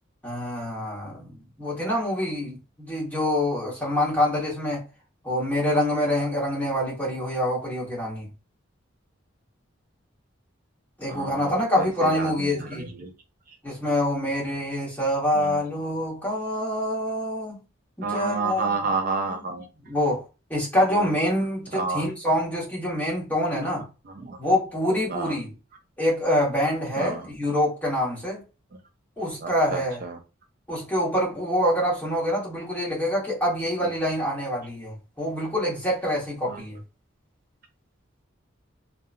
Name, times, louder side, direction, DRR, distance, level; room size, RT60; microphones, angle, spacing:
voice 1, 0.2-1.3 1.6-2.6 2.9-4.8 5.2-8.3 11.0-12.9 13.6-17.6 18.0-18.6 19.2-19.4 19.8-20.2 20.5-23.8 24.4-25.5 26.0-28.4 29.2-30.0 30.7-36.8, left 1 dB, 10° left, 1.1 m, -26 dB
voice 2, 11.1-13.1 15.4-15.6 18.0-19.7 21.7-22.1 24.2-24.4 25.1-25.4 27.0-27.3 29.4-30.2 36.5-36.6, right 4 dB, 45° right, 0.4 m, -30 dB
2.7 x 2.2 x 2.4 m
head